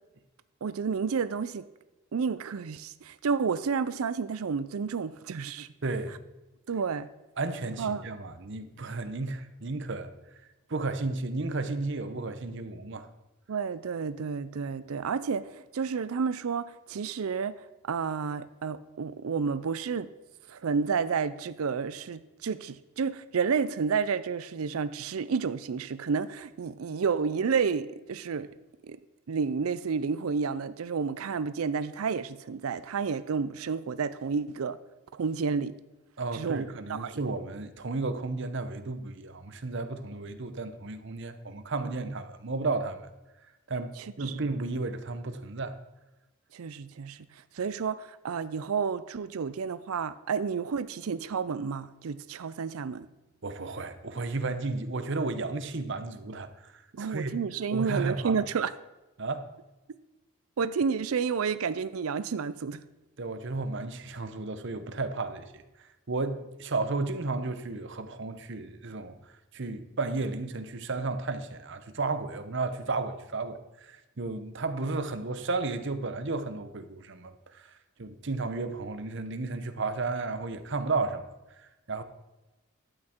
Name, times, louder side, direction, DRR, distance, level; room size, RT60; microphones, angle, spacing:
voice 1, 0.6-1.6 2.1-5.7 6.7-7.1 7.8-8.1 13.5-20.1 20.5-28.5 28.8-29.0 29.3-34.8 35.1-35.8 36.3-37.2 41.8-42.0 44.0-44.5 46.5-53.1 56.9-58.7 60.6-62.8, right 5 dB, 85° right, 14 dB, 0.5 m, -31 dB
voice 2, 5.8-6.2 7.4-10.1 10.7-13.1 36.2-43.0 43.7-45.7 53.4-57.3 57.7-58.3 59.2-59.5 63.2-65.6 66.1-69.1 69.5-77.7 78.0-81.3 81.9-82.0, right 3 dB, 55° right, 10 dB, 0.8 m, -33 dB
12.0 x 8.6 x 4.4 m, 1.1 s
head